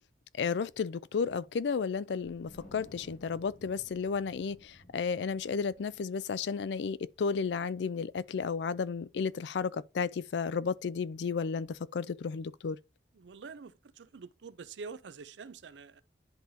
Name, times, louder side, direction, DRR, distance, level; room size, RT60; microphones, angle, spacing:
voice 1, 0.4-12.8, left 5 dB, 75° left, 0.4 m, -33 dB
Wind, 2.2-8.7, left 1 dB, 45° left, 2.1 m, -57 dB
voice 2, 13.1-16.0, right 5 dB, 90° right, 0.5 m, -46 dB
10.5 x 3.9 x 2.7 m
head